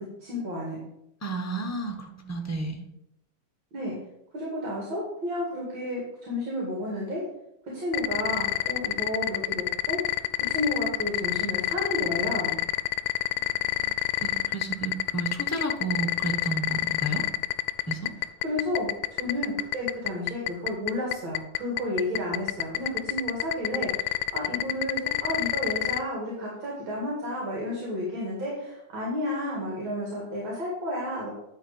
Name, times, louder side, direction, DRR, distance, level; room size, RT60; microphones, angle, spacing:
voice 1, 0.2-0.8 3.7-4.0 4.3-7.2 7.7-10.0 10.4-12.6 18.2-31.3, left 1 dB, 75° right, -3 dB, 2.9 m, -32 dB
voice 2, 1.2-2.8 13.3-13.9 14.2-17.2 17.9-18.1, right 2 dB, 15° left, 4 dB, 0.6 m, -32 dB
sound 1, 7.9-26.0, left 17 dB, 90° left, 1.4 m, -26 dB
10.5 x 3.8 x 7.1 m, 0.82 s
omnidirectional pair, 2.1 m